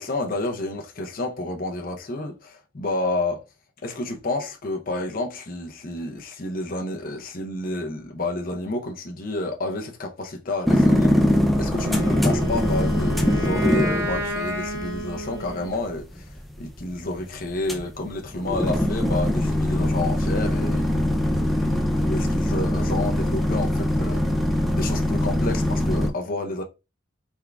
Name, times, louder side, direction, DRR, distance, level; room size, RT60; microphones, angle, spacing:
voice 1, 0.0-3.4 3.8-21.7 22.0-24.2 24.7-26.6, left 2 dB, 45° left, 0.6 m, -30 dB
sound 1, 10.7-26.1, left 1 dB, ahead, 0.4 m, -23 dB
Wind instrument woodwind instrument, 11.7-15.9, right 1 dB, 15° right, 1.0 m, -31 dB
3.5 x 3.5 x 2.3 m
head